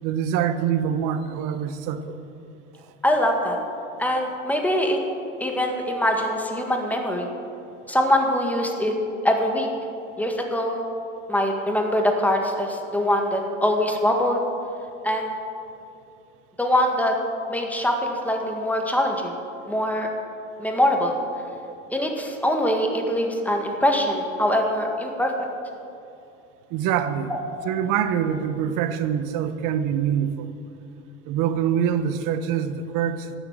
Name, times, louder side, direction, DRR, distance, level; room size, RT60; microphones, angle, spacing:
voice 1, 0.0-2.2 2.8-2.9 26.7-27.3 27.6-30.5 31.2-33.3, right 9 dB, 55° right, 11 dB, 1.1 m, -25 dB
voice 2, 3.0-3.6 4.0-5.0 5.4-7.3 7.9-8.9 9.2-9.7 10.2-10.8 11.3-14.4 15.0-15.3 16.6-17.2 17.5-19.4 19.7-20.1 20.6-21.1 21.9-25.3 27.3-27.4, left 1 dB, 5° left, 2 dB, 1.9 m, -23 dB
12.0 x 8.4 x 9.0 m, 2.7 s
supercardioid pair, 100°, 38 cm